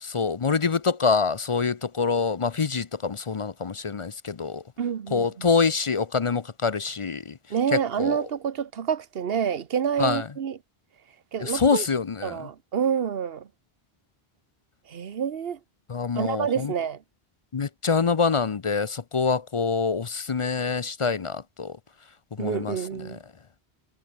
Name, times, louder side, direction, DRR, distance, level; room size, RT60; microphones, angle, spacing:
voice 1, 0.0-4.6 5.1-7.4 7.7-8.2 10.0-10.2 11.4-12.4 15.9-16.7 17.5-21.8 22.4-22.8 23.1-23.2, left 5 dB, 40° left, 0.6 m, -25 dB
voice 2, 4.8-5.5 7.5-10.6 11.3-11.9 12.2-13.5 14.9-15.6 16.1-17.0 22.4-23.2, right 7 dB, 70° right, 1.2 m, -28 dB
omnidirectional pair, 1.0 m